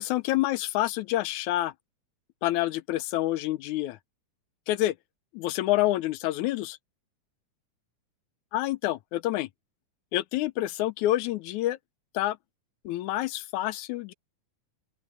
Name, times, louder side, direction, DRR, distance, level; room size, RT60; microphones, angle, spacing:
voice 1, 0.0-1.7 2.4-4.0 4.7-5.0 5.3-6.8 8.5-9.5 10.1-11.8 12.1-12.4 12.9-14.1, left 15 dB, 75° left, 2.0 m, -27 dB
open air
omnidirectional pair, 3.6 m